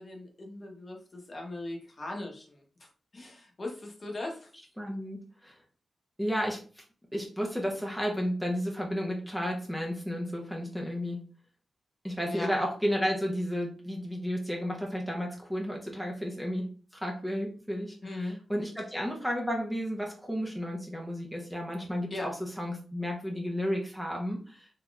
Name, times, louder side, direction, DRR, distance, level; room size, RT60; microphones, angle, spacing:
voice 1, 0.0-2.9 3.1-4.5 12.2-12.5 18.0-18.4 22.1-22.3, left 2 dB, 35° left, 1 dB, 0.9 m, -39 dB
voice 2, 4.8-5.6 6.2-6.8 7.1-11.2 12.0-24.7, equal, ahead, -1 dB, 0.7 m, -32 dB
3.9 x 2.8 x 2.3 m, 0.40 s
cardioid pair, 90°, 0 cm